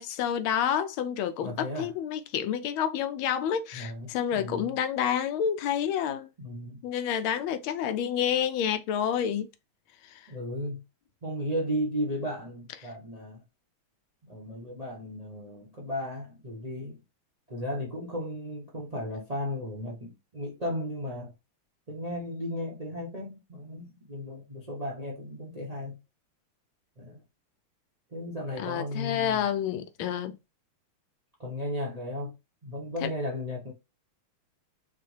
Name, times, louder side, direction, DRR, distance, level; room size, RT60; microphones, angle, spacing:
voice 1, 0.0-6.3 6.8-9.5 10.0-10.3 28.6-30.4 33.0-33.1, left 9 dB, 80° left, 1.4 m, -29 dB
voice 2, 1.4-1.9 3.7-4.7 6.4-6.8 10.3-10.8 11.2-13.4 14.2-17.0 17.5-21.3 21.9-26.0 27.0-27.2 28.1-29.4 31.4-32.3 32.6-33.7, equal, 35° right, 0.6 m, -35 dB
5.7 x 2.3 x 3.2 m
omnidirectional pair, 2.3 m